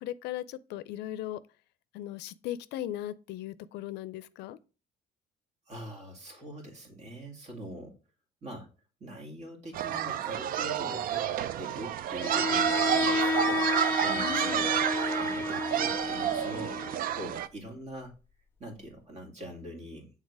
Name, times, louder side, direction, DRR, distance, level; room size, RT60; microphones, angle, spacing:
voice 1, 0.0-1.4 1.9-4.6 14.2-14.7, left 12 dB, 80° left, 0.4 m, -38 dB
voice 2, 5.7-7.9 8.4-8.7 9.0-11.3 11.6-13.7 14.0-16.8 17.1-18.1 18.6-20.1, equal, 40° right, 2.2 m, -43 dB
sound 1, 9.7-17.5, right 10 dB, 60° right, 0.4 m, -30 dB
Bowed string instrument, 12.2-17.2, left 3 dB, 15° left, 0.6 m, -31 dB
6.4 x 3.7 x 4.7 m
cardioid pair, 110°, 17 cm